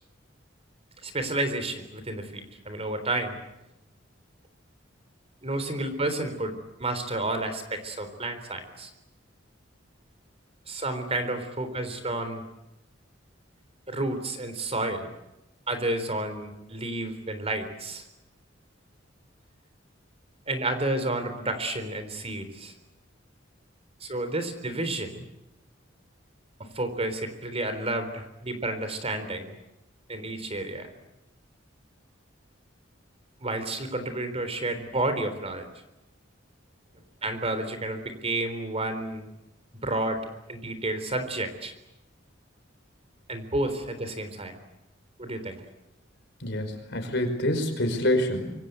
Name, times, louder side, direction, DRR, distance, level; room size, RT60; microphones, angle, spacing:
voice 1, 1.0-3.4 5.4-8.9 10.7-12.4 13.9-15.1 15.7-18.1 20.5-22.7 24.0-25.3 26.6-29.5 30.1-30.9 33.4-35.7 37.2-39.3 39.8-40.2 40.5-41.7 43.3-44.6 45.2-45.6, right 2 dB, 30° right, 9 dB, 3.9 m, -31 dB
voice 2, 46.4-48.5, left 1 dB, 60° left, 7 dB, 5.3 m, -26 dB
26.5 x 24.5 x 8.3 m, 0.91 s
head